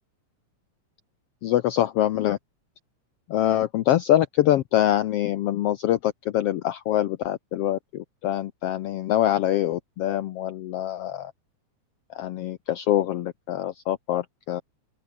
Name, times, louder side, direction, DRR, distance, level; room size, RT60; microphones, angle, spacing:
voice 1, 1.4-2.4 3.3-11.3 12.1-14.6, left 12 dB, 80° left, 1.3 m, -24 dB
open air
omnidirectional pair, 3.6 m